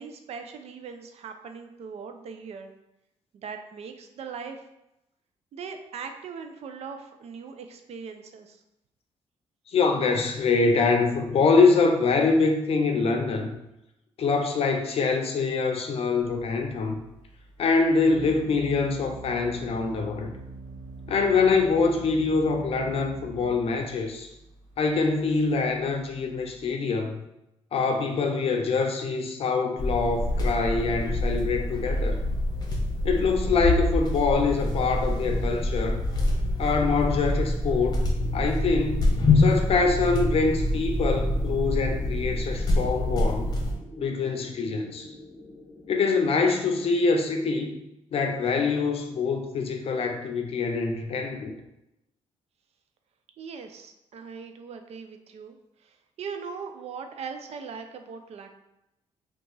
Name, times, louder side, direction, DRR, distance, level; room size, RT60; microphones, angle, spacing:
voice 1, 0.0-2.7 3.3-4.6 5.5-8.6 53.4-55.6 55.8-58.5, right 6 dB, 65° right, 6 dB, 0.4 m, -40 dB
voice 2, 9.7-13.6 14.2-17.0 17.6-20.3 21.1-24.3 24.8-27.2 27.7-32.2 33.0-36.0 36.6-39.1 39.3-43.5 44.0-45.1 45.9-47.8 48.1-51.5, left 4 dB, 55° left, 4 dB, 0.5 m, -24 dB
Organ, 16.2-26.7, right 3 dB, 90° right, 0.9 m, -44 dB
sound 1, 29.8-43.8, left 1 dB, 35° left, 0.9 m, -26 dB
sound 2, 38.0-46.8, left 1 dB, ahead, 0.9 m, -47 dB
2.8 x 2.4 x 3.9 m, 0.88 s
cardioid pair, 90°, 12 cm